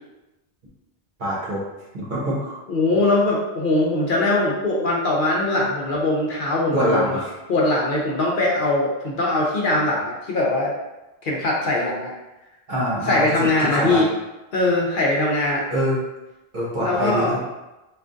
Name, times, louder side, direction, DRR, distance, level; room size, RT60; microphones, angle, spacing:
voice 1, 1.2-1.6 1.9-2.6 6.7-7.3 12.7-14.0 15.7-16.0 16.5-17.4, equal, 55° right, -7 dB, 1.2 m, -24 dB
voice 2, 2.7-7.2 7.5-10.7 11.2-12.1 13.0-14.1 14.5-15.6 16.8-17.5, left 2 dB, 60° left, -3 dB, 0.7 m, -21 dB
3.4 x 2.4 x 2.5 m, 1.0 s
omnidirectional pair, 1.0 m